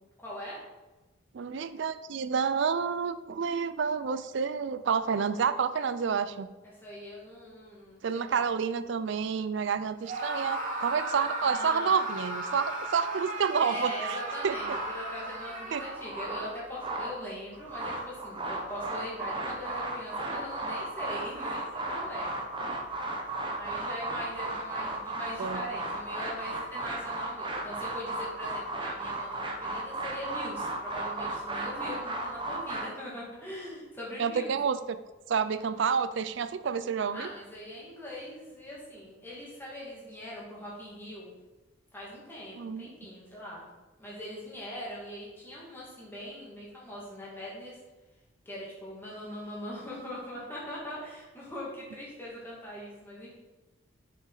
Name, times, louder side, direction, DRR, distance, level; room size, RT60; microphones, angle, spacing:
voice 1, 0.2-0.6 6.8-8.4 11.4-12.0 13.6-22.4 23.6-34.6 37.1-41.3 41.9-43.7 44.0-47.8 48.5-53.4, left 1 dB, 10° left, -6 dB, 2.0 m, -41 dB
voice 2, 1.3-6.5 8.0-14.2 14.4-14.6 15.7-15.8 25.4-25.6 34.2-34.8 35.3-37.3 42.6-42.9, right 6 dB, 60° right, 12 dB, 0.4 m, -29 dB
Screaming, 10.0-16.3, right 2 dB, 40° right, 1.3 m, -35 dB
sound 1, 14.5-15.3 15.8-17.2 17.5-32.8, right 2 dB, 25° right, 0.7 m, -35 dB
6.4 x 5.4 x 3.9 m, 1.1 s
head